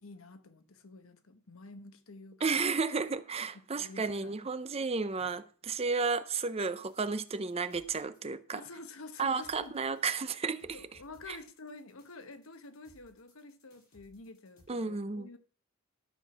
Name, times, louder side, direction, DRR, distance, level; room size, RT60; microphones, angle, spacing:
voice 1, 0.0-2.7 3.4-3.5 3.8-4.3 5.2-5.3 8.5-9.8 10.7-15.4, left 3 dB, 70° left, 1.0 m, -49 dB
voice 2, 2.4-8.6 9.2-10.8 11.3-11.4 14.7-15.3, right 4 dB, 30° right, 0.6 m, -32 dB
sound 1, 6.6-8.2 9.4-14.7, left 1 dB, 50° left, 6.5 m, -65 dB
12.5 x 5.9 x 5.9 m
head